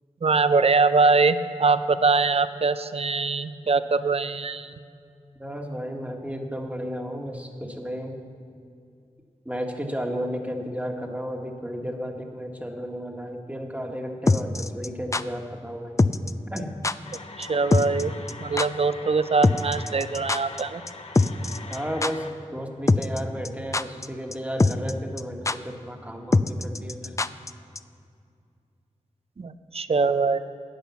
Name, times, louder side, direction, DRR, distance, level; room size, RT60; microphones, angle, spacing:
voice 1, 0.2-4.7 17.4-18.1 18.4-20.8 29.4-30.4, right 4 dB, 50° right, 12 dB, 0.6 m, -22 dB
voice 2, 5.4-8.2 9.4-16.0 16.5-16.7 21.7-22.3 22.5-27.2, equal, 10° right, 2 dB, 1.5 m, -33 dB
sound 1, 14.3-15.2 16.0-16.3 16.6-16.7 16.8-17.2 17.4-17.5 17.7-18.0 18.3-18.4 18.6-18.7 19.4-20.6 20.9-21.0 21.1-21.8 22.0-22.1 22.9-23.2 23.4-24.1 24.3-24.4 24.6-24.9 25.2-25.3 25.5-25.6 26.3-27.5 27.8-27.9, left 3 dB, 25° left, 0.4 m, -22 dB
sound 2, 17.0-22.3, left 3 dB, 55° left, 1.0 m, -42 dB
10.5 x 8.6 x 7.0 m, 2.3 s
cardioid pair, 40°, 13 cm